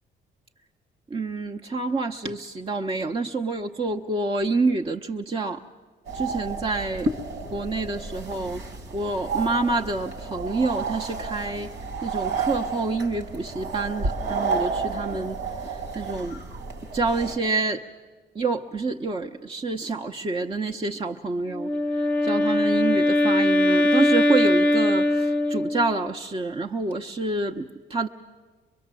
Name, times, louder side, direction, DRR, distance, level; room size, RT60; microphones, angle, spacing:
voice 1, 1.1-5.6 6.1-7.1 7.5-8.6 8.9-11.7 12.0-15.4 15.9-16.4 16.9-17.8 18.3-21.7 22.2-27.6 27.9-28.1, right 3 dB, 25° right, 2 dB, 0.8 m, -27 dB
sound 1, 6.1-17.4, right 4 dB, 75° right, 2.6 m, -31 dB
Wind instrument woodwind instrument, 21.5-26.0, left 1 dB, 5° left, 0.9 m, -21 dB
24.0 x 22.0 x 7.6 m, 1.4 s
cardioid pair, 90°, 20 cm